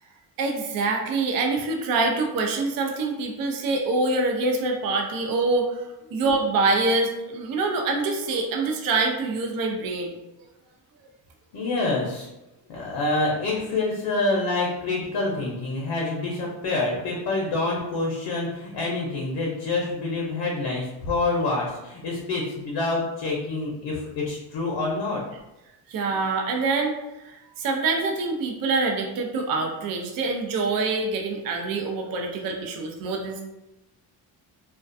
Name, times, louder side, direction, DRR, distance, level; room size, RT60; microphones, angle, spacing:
voice 1, 0.4-10.2 25.9-33.4, right 3 dB, 50° right, 2 dB, 0.5 m, -25 dB
voice 2, 11.5-12.3 12.7-25.2, left 2 dB, 65° left, -2 dB, 0.7 m, -27 dB
2.3 x 2.2 x 2.5 m, 0.97 s
cardioid pair, 110°, 44 cm